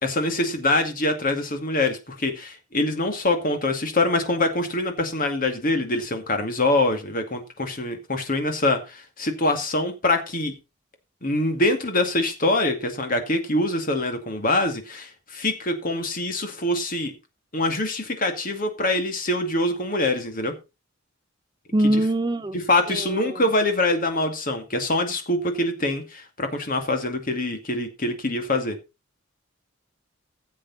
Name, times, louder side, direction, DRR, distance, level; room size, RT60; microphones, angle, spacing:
voice 1, 0.0-10.5 11.2-17.1 17.5-20.5 21.9-22.0 22.5-28.8, left 2 dB, 45° left, 2.3 m, -24 dB
voice 2, 21.7-22.6 22.9-23.4, right 1 dB, 20° right, 0.5 m, -23 dB
15.0 x 7.5 x 4.1 m
head